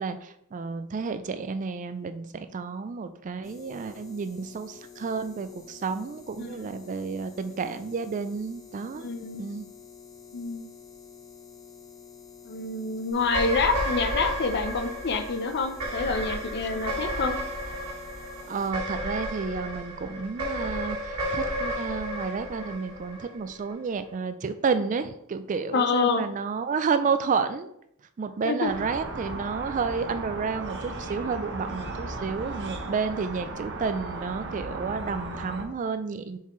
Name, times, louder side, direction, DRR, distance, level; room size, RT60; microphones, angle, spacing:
voice 1, 0.0-9.1 9.3-9.7 18.4-27.7 28.2-36.4, right 5 dB, 35° right, 10 dB, 0.3 m, -31 dB
sound 1, 3.4-18.7, left 6 dB, 15° left, 0.8 m, -49 dB
voice 2, 6.4-6.8 9.0-9.4 10.3-10.7 12.4-17.4 25.7-26.3 28.4-28.7, left 4 dB, 50° left, 8 dB, 0.6 m, -27 dB
sound 2, 13.2-23.7, equal, 90° right, 1.6 m, -32 dB
sound 3, 28.7-35.6, right 2 dB, 55° right, 0.8 m, -36 dB
6.9 x 4.6 x 3.1 m, 0.75 s
head